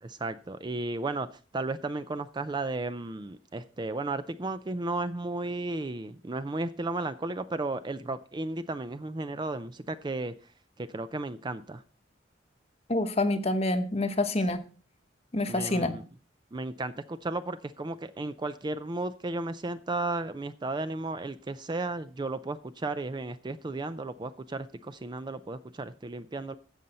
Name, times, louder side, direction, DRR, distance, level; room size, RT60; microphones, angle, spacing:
voice 1, 0.0-1.3 1.5-10.3 10.8-11.8 15.5-16.0 16.5-26.5, right 2 dB, 25° right, 12 dB, 0.4 m, -34 dB
voice 2, 12.9-14.6 15.3-15.9, left 2 dB, 35° left, 9 dB, 0.9 m, -27 dB
15.5 x 5.5 x 4.2 m, 0.38 s
head